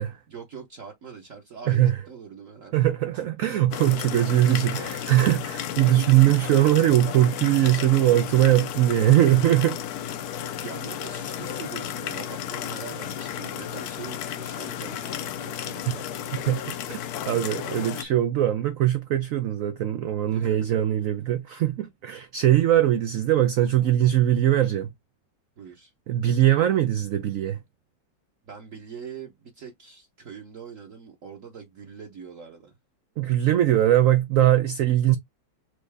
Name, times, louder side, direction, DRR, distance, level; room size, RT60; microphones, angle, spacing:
voice 1, 0.3-2.9 5.0-6.1 10.6-16.5 20.3-20.8 25.6-25.9 28.4-32.7, right 6 dB, 55° right, 1.1 m, -43 dB
voice 2, 2.7-9.8 16.5-17.0 17.3-24.9 26.1-27.6 33.2-35.2, right 13 dB, 90° right, 0.7 m, -21 dB
sound 1, 3.7-18.0, left 10 dB, 70° left, 1.0 m, -33 dB
4.6 x 2.6 x 3.3 m
omnidirectional pair, 2.0 m